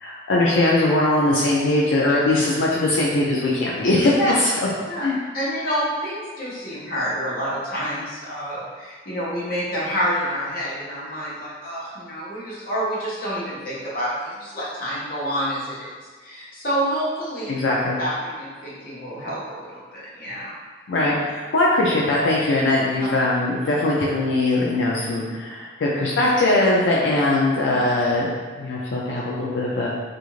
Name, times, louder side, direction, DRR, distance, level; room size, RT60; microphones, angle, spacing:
voice 1, 0.0-4.5 5.0-5.2 17.5-18.0 20.9-28.3 28.6-29.9, left 2 dB, 85° left, -5 dB, 0.4 m, -21 dB
voice 2, 5.3-15.9 16.2-17.5 18.0-20.5, equal, 50° left, -8 dB, 0.8 m, -28 dB
2.5 x 2.4 x 3.0 m, 1.5 s
head